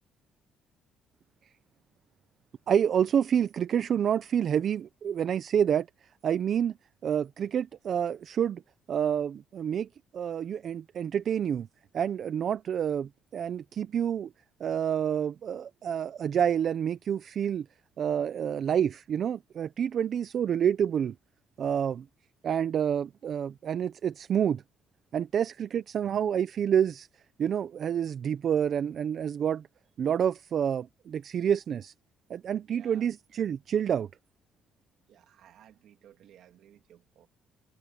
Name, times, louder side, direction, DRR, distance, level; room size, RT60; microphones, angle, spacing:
voice 1, 2.7-5.9 6.2-6.7 7.0-8.6 8.9-9.9 10.1-11.7 11.9-14.3 14.6-17.7 18.0-21.1 21.6-22.0 22.4-24.6 25.1-27.1 27.4-29.6 30.0-31.9 32.3-34.1, right 8 dB, 40° right, 0.5 m, -28 dB
voice 2, 32.7-33.1 35.1-37.3, right 11 dB, 60° right, 2.6 m, -57 dB
cardioid pair, 165°, 0 cm